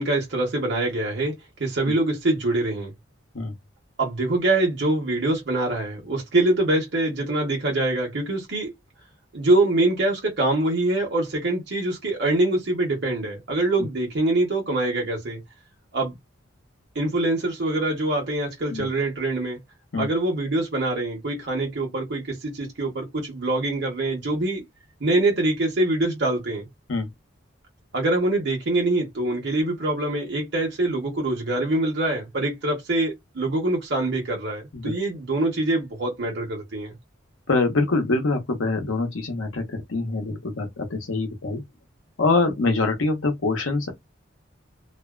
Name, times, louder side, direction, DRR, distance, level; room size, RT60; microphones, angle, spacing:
voice 1, 0.0-2.9 4.0-8.7 9.3-15.4 15.9-16.2 16.9-19.6 20.0-24.6 25.0-26.7 27.9-36.9, right 2 dB, 55° right, 1.0 m, -24 dB
voice 2, 37.5-41.6 42.2-43.9, left 3 dB, 85° left, 0.8 m, -24 dB
2.6 x 2.1 x 2.3 m
head